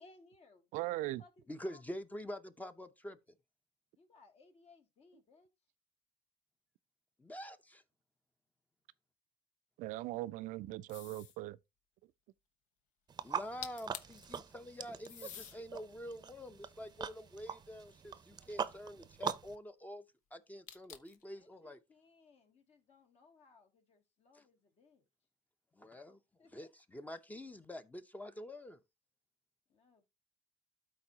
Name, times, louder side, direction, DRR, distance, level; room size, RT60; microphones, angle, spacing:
voice 1, 0.0-1.8 4.0-5.5 18.4-18.7 21.3-25.0 26.4-26.7 29.7-30.1, left 3 dB, 50° left, 2.5 m, -64 dB
voice 2, 0.7-1.2 9.8-11.6, right 17 dB, 75° right, 0.4 m, -39 dB
voice 3, 1.5-3.2 7.2-7.8 13.2-20.0 20.3-21.8 24.3-24.4 25.8-26.2 26.5-28.8, equal, 10° left, 0.7 m, -47 dB
sound 1, 10.9-11.4 13.4-13.5 13.6-14.2 15.0-15.6 16.3-17.7 20.7-21.2, left 9 dB, 70° left, 1.0 m, -49 dB
sound 2, 13.1-19.6, right 6 dB, 30° right, 0.6 m, -43 dB
12.5 x 4.4 x 2.8 m
cardioid pair, 95°, 13 cm